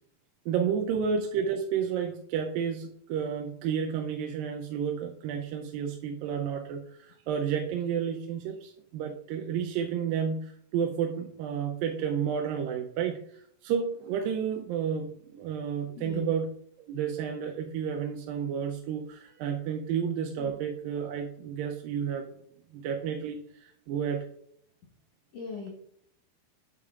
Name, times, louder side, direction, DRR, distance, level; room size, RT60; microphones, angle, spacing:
voice 1, 0.5-16.5 16.8-22.3 22.7-24.2, right 7 dB, 85° right, 2 dB, 2.3 m, -31 dB
voice 2, 16.0-16.3 20.4-20.5 25.3-25.7, left 4 dB, 60° left, -3 dB, 1.9 m, -39 dB
8.5 x 8.2 x 2.4 m, 0.71 s
omnidirectional pair, 4.1 m